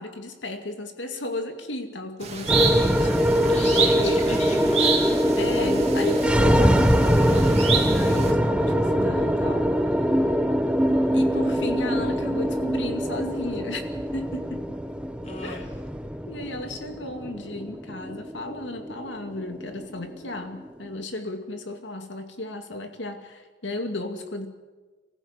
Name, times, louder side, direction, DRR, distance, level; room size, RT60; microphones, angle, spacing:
voice 1, 0.0-3.1 3.4-3.5 4.0-4.4 5.4-10.0 11.1-14.8 15.4-15.6 16.3-24.5, left 2 dB, 80° left, 6 dB, 2.4 m, -34 dB
sound 1, 2.2-8.3, right 6 dB, 35° right, 2.7 m, -29 dB
sound 2, 2.5-20.9, equal, 5° right, 0.8 m, -23 dB
voice 2, 3.5-5.3 15.2-15.7, left 2 dB, 40° left, 0 dB, 3.9 m, -35 dB
24.0 x 15.5 x 8.1 m, 1.3 s
head